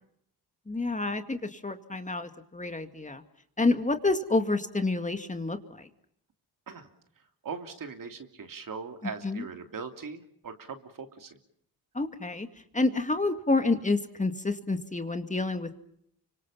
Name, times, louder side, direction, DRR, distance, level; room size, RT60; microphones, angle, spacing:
voice 1, 0.7-3.2 3.6-5.9 9.2-9.4 11.9-12.5 12.7-15.8, left 3 dB, 20° left, 7 dB, 2.2 m, -28 dB
voice 2, 7.4-11.4, right 5 dB, 55° right, 6 dB, 3.1 m, -40 dB
30.0 x 25.5 x 5.7 m, 0.70 s
cardioid pair, 65°, 40 cm